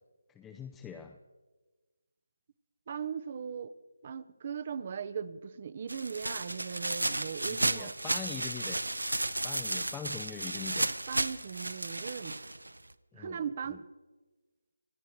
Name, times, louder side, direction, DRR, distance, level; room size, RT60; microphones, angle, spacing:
voice 1, 0.3-1.2 7.5-8.8 9.4-10.9 13.1-13.8, left 7 dB, 10° left, 5 dB, 0.6 m, -43 dB
voice 2, 2.9-3.7 4.0-7.9 11.1-12.4 13.1-13.8, right 7 dB, 35° right, 16 dB, 0.7 m, -38 dB
sound 1, 5.9-12.9, right 2 dB, 85° right, 0.8 m, -33 dB
27.0 x 9.1 x 4.6 m, 1.2 s
figure-of-eight pair, 155°, 0 cm